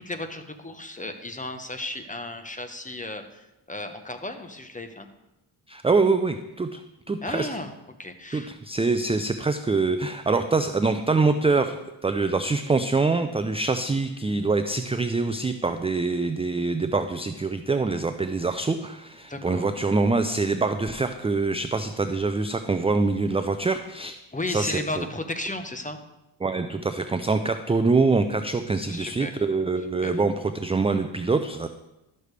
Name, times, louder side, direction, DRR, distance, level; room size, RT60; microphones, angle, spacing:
voice 1, 0.0-5.1 7.2-7.7 8.0-8.5 19.3-19.7 24.3-26.0 28.7-29.4 30.0-30.2, left 2 dB, 15° left, 7 dB, 1.1 m, -34 dB
voice 2, 5.7-6.8 7.1-7.5 8.3-24.2 24.5-25.1 26.4-31.7, right 3 dB, 15° right, 9 dB, 0.4 m, -24 dB
12.5 x 6.6 x 3.3 m, 0.94 s
cardioid pair, 60°, 50 cm